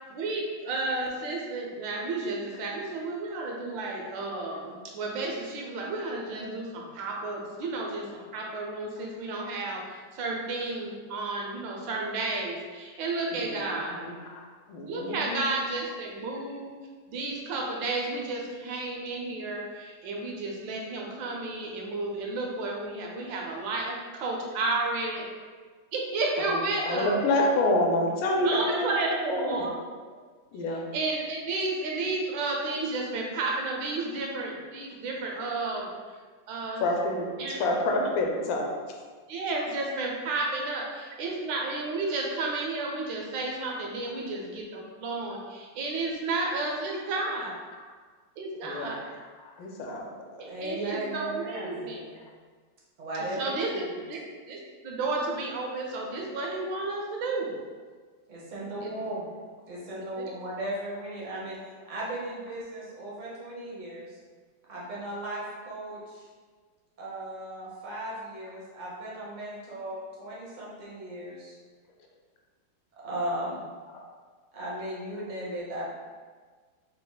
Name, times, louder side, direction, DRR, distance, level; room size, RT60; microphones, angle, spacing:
voice 1, 0.1-14.1 14.9-16.7 17.1-25.3 25.9-27.3 28.4-29.8 30.7-35.9 36.5-36.8 37.4-37.6 39.3-47.5 48.4-49.2 50.4-52.2 53.4-57.6 58.8-59.2 60.2-60.3, right 2 dB, 85° right, -1 dB, 1.4 m, -32 dB
voice 2, 13.3-15.4 26.9-29.7 30.5-30.8 36.8-38.7 48.6-48.9 49.6-50.1 58.6-58.7 73.9-74.0, left 1 dB, 80° left, 0 dB, 1.3 m, -28 dB
voice 3, 50.5-51.9 53.0-53.8 58.3-59.3 59.7-61.6 61.8-64.2 64.7-66.3 67.0-71.5 73.0-73.7 74.5-75.9, right 1 dB, 55° right, -6 dB, 0.4 m, -36 dB
3.6 x 2.1 x 3.9 m, 1.5 s
omnidirectional pair, 2.0 m